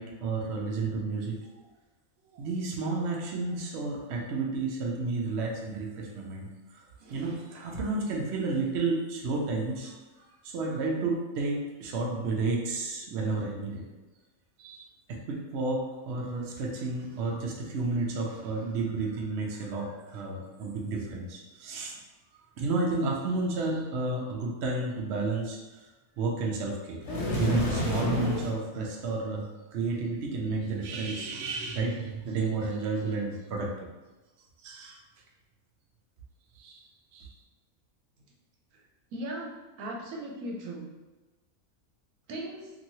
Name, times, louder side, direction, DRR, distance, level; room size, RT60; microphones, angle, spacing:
voice 1, 0.0-1.5 2.3-6.5 7.0-10.0 10.4-13.8 14.6-22.0 22.6-25.9 26.2-27.0 27.3-33.7 34.6-35.0 36.6-36.8 37.1-37.3, right 3 dB, 65° right, -1 dB, 0.7 m, -31 dB
sound 1, 27.0-28.6, left 1 dB, 55° left, 1.0 m, -29 dB
voice 2, 39.1-40.9 42.3-42.7, right 1 dB, 80° right, -1 dB, 1.1 m, -37 dB
3.0 x 2.6 x 2.7 m, 1.2 s
omnidirectional pair, 1.5 m